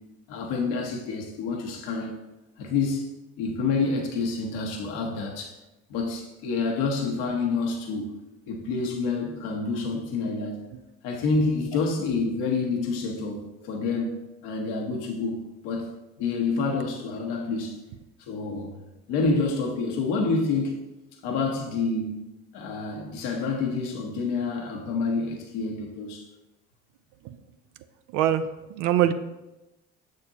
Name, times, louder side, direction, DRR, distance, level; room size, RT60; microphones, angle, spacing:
voice 1, 0.3-2.2 2.6-3.1 3.4-5.6 5.9-8.1 8.5-10.6 11.0-14.2 14.4-15.9 16.2-17.8 18.2-18.7 19.1-20.7 21.2-22.3 22.5-26.3, left 4 dB, 85° left, 1 dB, 1.0 m, -28 dB
voice 2, 28.1-29.1, right 11 dB, 80° right, 10 dB, 0.5 m, -24 dB
6.9 x 6.5 x 2.8 m, 1.0 s
supercardioid pair, 75°, 31 cm